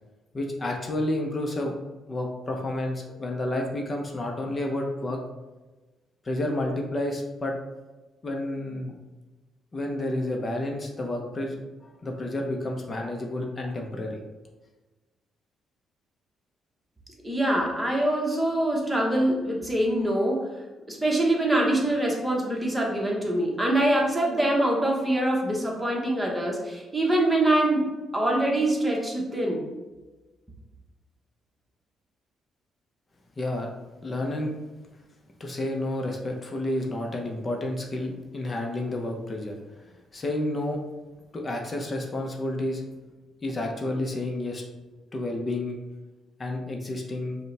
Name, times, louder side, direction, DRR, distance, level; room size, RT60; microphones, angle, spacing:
voice 1, 0.3-1.7 2.1-5.2 6.2-7.5 8.2-9.0 9.7-14.2 33.4-33.7 34.0-34.5 35.4-39.6 40.1-40.8 41.3-42.8 43.4-44.6 45.1-45.8 46.4-47.4, left 1 dB, 30° left, 1 dB, 0.6 m, -30 dB
voice 2, 17.2-20.6 20.9-27.9 28.1-29.6, right 1 dB, 10° right, -2 dB, 1.0 m, -24 dB
5.1 x 2.2 x 3.2 m, 1.2 s
cardioid pair, 90°, 0 cm